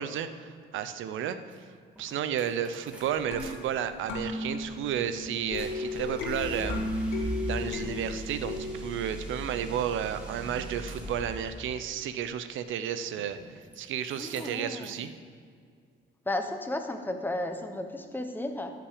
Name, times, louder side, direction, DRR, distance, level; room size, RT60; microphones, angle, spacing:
voice 1, 0.0-1.4 2.0-6.8 7.5-13.4 13.8-15.1, right 9 dB, 80° right, 11 dB, 0.6 m, -32 dB
sound 1, 1.5-1.6 2.0-3.5 3.8-11.6 13.1-13.8 14.0-15.0, right 2 dB, 5° right, 2.1 m, -41 dB
sound 2, 3.3-8.7, left 3 dB, 85° left, 1.9 m, -35 dB
voice 2, 14.2-14.9 16.3-18.7, left 1 dB, 10° left, 6 dB, 1.0 m, -33 dB
13.0 x 5.9 x 5.0 m, 2.1 s
cardioid pair, 90°, 20 cm